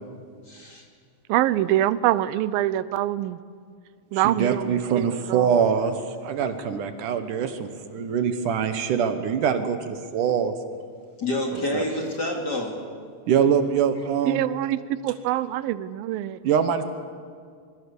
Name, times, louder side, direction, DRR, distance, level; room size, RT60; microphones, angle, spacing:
voice 1, 0.5-0.8 11.2-12.8, left 1 dB, 30° left, 1 dB, 2.9 m, -28 dB
voice 2, 1.3-3.4 4.1-5.5 14.3-16.4, right 13 dB, 90° right, 16 dB, 2.5 m, -25 dB
voice 3, 4.1-10.5 11.5-11.8 13.3-14.5 16.4-16.8, right 7 dB, 70° right, 9 dB, 2.5 m, -24 dB
25.5 x 23.0 x 6.9 m, 2.1 s
omnidirectional pair, 4.1 m